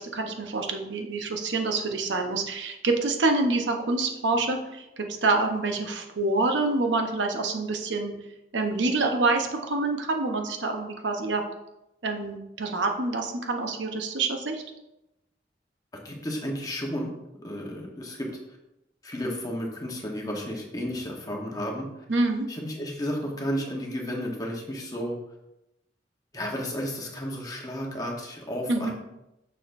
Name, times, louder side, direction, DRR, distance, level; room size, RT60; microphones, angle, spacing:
voice 1, 0.0-8.1 8.5-11.4 12.0-14.6 22.1-22.5 28.7-28.9, right 3 dB, 85° right, 3 dB, 0.9 m, -26 dB
voice 2, 16.0-17.1 17.4-18.3 19.0-21.9 22.5-25.2 26.3-28.9, equal, 20° left, -1 dB, 1.0 m, -32 dB
6.6 x 6.5 x 2.6 m, 0.91 s
head